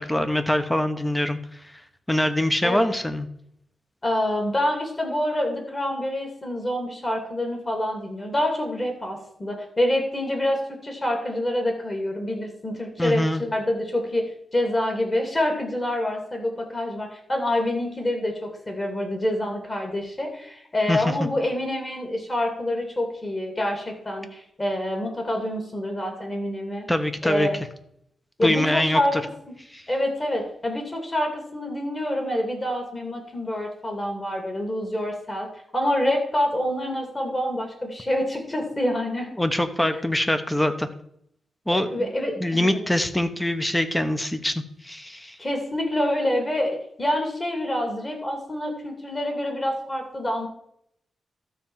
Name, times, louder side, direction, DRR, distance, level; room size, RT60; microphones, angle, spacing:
voice 1, 0.0-1.4 2.1-3.3 13.0-13.4 20.9-21.3 26.9-27.5 28.4-29.2 29.7-29.8 39.4-40.9 41.7-42.1 42.4-45.4, left 1 dB, 10° left, 9 dB, 0.9 m, -24 dB
voice 2, 2.6-3.0 4.0-14.2 14.5-26.9 27.2-27.6 28.4-29.1 29.9-35.5 35.7-39.3 41.7-42.9 45.4-50.5, left 1 dB, 25° left, 3 dB, 2.7 m, -26 dB
12.5 x 4.4 x 7.3 m, 0.71 s
wide cardioid pair, 135°, 0 cm